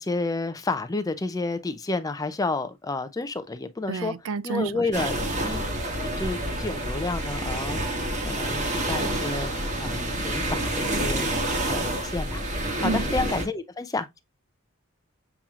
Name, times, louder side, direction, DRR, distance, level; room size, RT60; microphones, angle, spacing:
voice 1, 0.0-4.1 4.4-5.7 6.0-7.8 8.2-9.5 9.8-11.3 11.7-12.4 12.8-14.2, left 3 dB, 15° left, 0.4 m, -30 dB
voice 2, 3.9-5.1 12.8-13.0, right 4 dB, 60° right, 0.4 m, -30 dB
sound 1, 4.9-13.4, right 1 dB, 35° right, 1.2 m, -28 dB
6.9 x 3.0 x 2.4 m
head